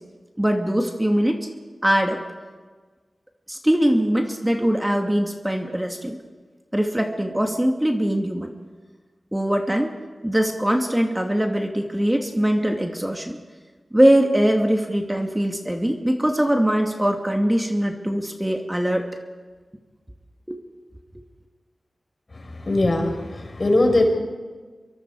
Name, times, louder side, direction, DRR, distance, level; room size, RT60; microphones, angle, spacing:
voice 1, 0.4-1.5 1.8-2.2 3.5-6.2 6.7-8.5 9.3-9.9 10.2-13.4 13.9-19.0 20.5-20.6, equal, 15° right, 3 dB, 2.5 m, -22 dB
voice 2, 22.3-24.0, left 2 dB, 50° left, 3 dB, 5.4 m, -21 dB
27.0 x 22.5 x 4.9 m, 1.4 s
cardioid pair, 40°, 0 cm